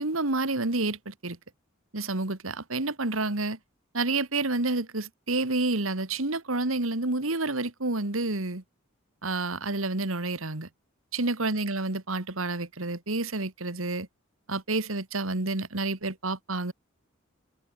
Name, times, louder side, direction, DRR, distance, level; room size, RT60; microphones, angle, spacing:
voice 1, 0.0-1.4 1.9-3.6 3.9-8.6 9.2-10.7 11.1-14.1 14.5-16.7, right 2 dB, 85° right, 2.4 m, -29 dB
head